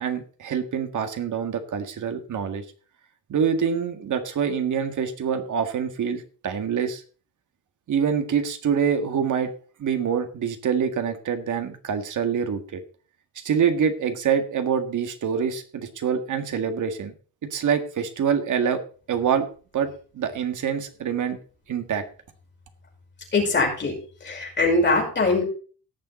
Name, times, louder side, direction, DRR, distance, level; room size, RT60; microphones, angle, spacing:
voice 1, 0.0-2.6 3.3-7.0 7.9-9.5 9.8-12.8 13.4-17.1 17.4-18.8 19.1-19.5 19.7-19.9 20.1-21.4 21.7-22.0, right 7 dB, 50° right, 7 dB, 1.8 m, -25 dB
voice 2, 23.3-23.9 24.2-25.4, left 3 dB, 30° left, -1 dB, 5.4 m, -22 dB
17.5 x 6.9 x 4.2 m, 0.39 s
cardioid pair, 175°, 38 cm